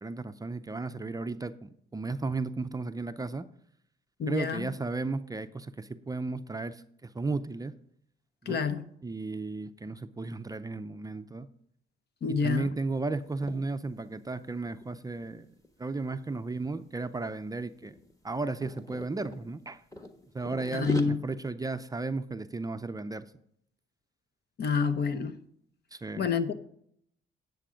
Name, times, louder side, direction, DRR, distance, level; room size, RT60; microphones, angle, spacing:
voice 1, 0.0-3.5 4.3-7.7 8.4-8.6 9.0-11.5 12.3-15.5 15.8-17.9 18.2-19.8 20.3-23.3 25.9-26.3, right 3 dB, 20° right, 0.5 m, -34 dB
voice 2, 4.2-4.7 8.5-8.8 12.2-12.7 20.7-21.2 24.6-25.4 26.2-26.5, left 5 dB, 55° left, 0.9 m, -28 dB
sound 1, 13.3-13.6 14.0-14.2 14.5-16.4 17.0-17.3 17.6-19.4 19.9-21.0, left 2 dB, 15° left, 1.4 m, -39 dB
10.0 x 7.6 x 5.0 m
cardioid pair, 90°, 20 cm